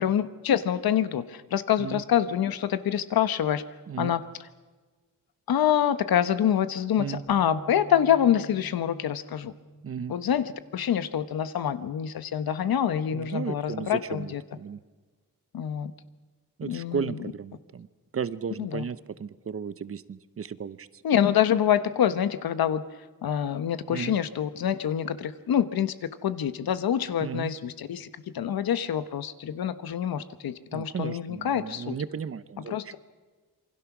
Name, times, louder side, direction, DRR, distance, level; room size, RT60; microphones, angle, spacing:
voice 1, 0.0-3.6 4.0-4.2 5.5-9.5 10.1-14.4 15.5-15.9 16.6-17.2 18.6-18.8 21.0-22.8 23.2-32.0 32.7-33.0, left 9 dB, 85° left, 12 dB, 1.2 m, -26 dB
Bass guitar, 7.3-13.5, right 3 dB, 85° right, 4.6 m, -50 dB
voice 2, 9.8-10.2 13.1-14.8 16.6-17.9 18.1-21.0 23.9-24.2 27.2-27.5 30.7-33.0, right 6 dB, 40° right, 15 dB, 0.7 m, -35 dB
27.5 x 24.0 x 6.1 m, 1.3 s
wide cardioid pair, 165°, 35 cm